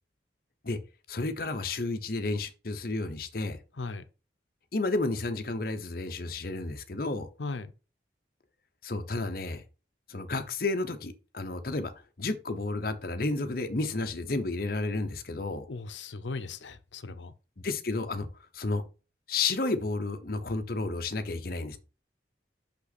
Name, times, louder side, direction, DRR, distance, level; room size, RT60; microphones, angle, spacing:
voice 1, 1.1-3.6 4.7-7.3 8.8-9.6 10.1-11.9 12.2-15.6 17.6-18.3 18.5-18.8 19.3-21.8, left 3 dB, 55° left, 0.9 m, -31 dB
voice 2, 7.4-7.7 15.7-17.3, left 3 dB, 85° left, 0.7 m, -37 dB
6.1 x 5.6 x 4.1 m
head